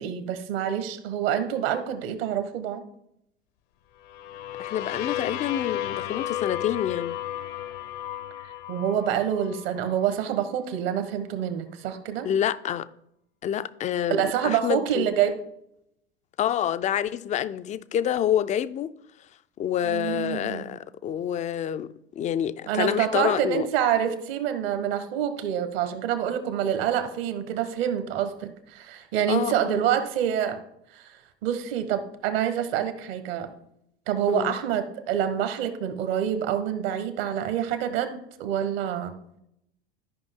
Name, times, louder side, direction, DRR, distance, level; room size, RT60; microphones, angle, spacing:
voice 1, 0.0-2.8 8.4-12.3 14.1-15.4 19.8-20.7 22.7-30.6 30.9-33.5 34.1-39.1, right 9 dB, 60° right, 1.2 m, -27 dB
sound 1, 4.0-9.9, left 12 dB, 50° left, 0.7 m, -33 dB
voice 2, 4.6-7.2 12.2-12.9 13.4-15.1 16.4-18.9 19.6-23.7 29.3-29.8 34.3-34.6, left 10 dB, 25° left, 0.4 m, -27 dB
13.0 x 5.3 x 3.6 m
hypercardioid pair, 80°, 33 cm